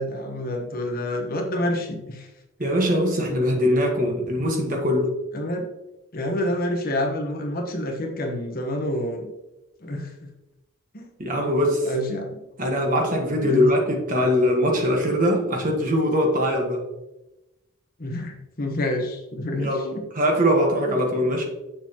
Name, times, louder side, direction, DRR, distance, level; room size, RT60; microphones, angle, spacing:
voice 1, 0.0-2.3 5.3-5.7 6.1-9.3 9.8-10.3 10.9-11.1 11.8-12.4 13.4-13.7 18.0-20.1, left 1 dB, 40° left, 2 dB, 1.1 m, -28 dB
voice 2, 2.6-5.2 11.2-11.9 12.6-16.8 19.6-21.4, equal, 35° right, 1 dB, 1.4 m, -22 dB
7.6 x 6.8 x 2.9 m, 0.98 s
head